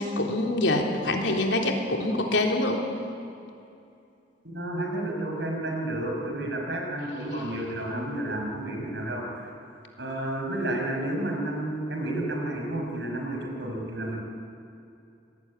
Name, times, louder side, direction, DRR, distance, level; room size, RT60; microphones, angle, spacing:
voice 1, 0.0-2.8, left 2 dB, 80° left, 2 dB, 3.6 m, -25 dB
voice 2, 4.5-9.5 10.0-14.2, right 1 dB, 70° right, 1 dB, 6.1 m, -31 dB
26.0 x 19.5 x 9.7 m, 2.6 s
head